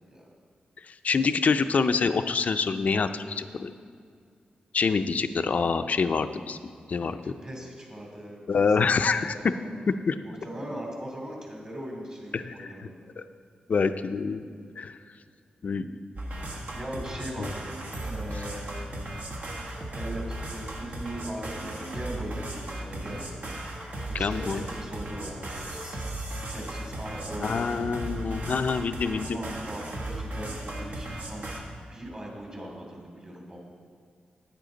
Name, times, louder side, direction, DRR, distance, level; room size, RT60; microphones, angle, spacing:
voice 1, 0.9-3.7 4.7-6.6 6.9-7.2 8.5-9.4 9.9-10.2 12.3-12.7 13.2-13.3 13.7-14.4 14.8-14.9 15.6-15.9 17.4-17.5 24.1-24.6 27.4-29.4, left 5 dB, 60° left, 10 dB, 0.4 m, -26 dB
voice 2, 7.2-9.7 10.2-12.9 16.7-17.7 18.0-19.0 19.9-20.2 20.5-23.4 24.2-26.0 26.5-27.7 29.2-31.6 31.9-33.6, right 1 dB, 30° right, -1 dB, 2.6 m, -39 dB
sound 1, 16.1-31.6, right 1 dB, 60° right, 1.4 m, -36 dB
10.0 x 9.0 x 3.9 m, 2.2 s
cardioid pair, 80°, 3 cm